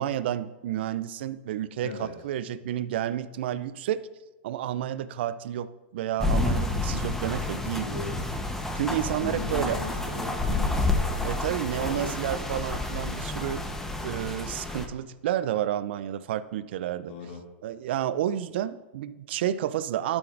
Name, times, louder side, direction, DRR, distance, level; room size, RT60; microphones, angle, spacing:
voice 1, 0.0-4.0 4.4-7.9 8.7-9.8 11.2-13.8 14.0-17.1 17.6-20.2, right 11 dB, 70° right, 15 dB, 0.4 m, -30 dB
voice 2, 1.8-2.1 7.5-8.2 9.0-12.3 17.1-17.4, left 4 dB, 65° left, 0 dB, 2.5 m, -39 dB
sound 1, 6.2-14.9, left 2 dB, 5° left, 0.9 m, -29 dB
12.0 x 9.4 x 2.5 m, 1.1 s
hypercardioid pair, 115°, 6 cm